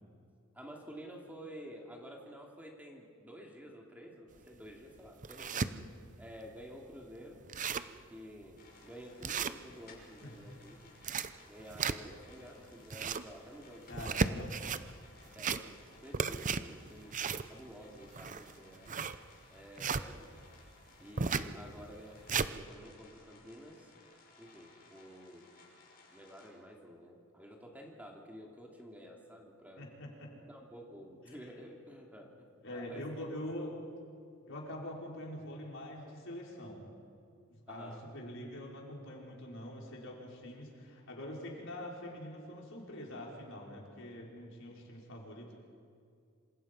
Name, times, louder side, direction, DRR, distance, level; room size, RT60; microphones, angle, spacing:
voice 1, 0.5-5.8 6.2-7.4 8.1-10.8 11.5-14.1 15.3-17.2 17.5-19.0 19.5-20.3 21.0-23.9 24.4-25.5 26.1-29.9 30.4-33.0 37.7-38.0, equal, 10° right, 0 dB, 2.7 m, -51 dB
sound 1, 4.4-4.5 5.0-5.7 6.3-6.4 6.6-6.7 7.1-7.2 7.4-8.0 8.4-8.6 9.2-10.0 10.8-12.3 12.7-13.3 13.9-14.8 15.3-15.9 16.1-20.1 21.2-21.5 22.0-22.5, right 5 dB, 40° right, 0.7 m, -34 dB
sound 2, 8.6-26.5, left 3 dB, 45° left, 6.0 m, -61 dB
voice 2, 13.9-14.5 29.8-30.3 31.3-31.4 32.6-33.8 34.5-36.8 37.5-45.5, left 1 dB, 65° left, -2 dB, 5.4 m, -44 dB
27.5 x 27.0 x 5.5 m, 2.3 s
head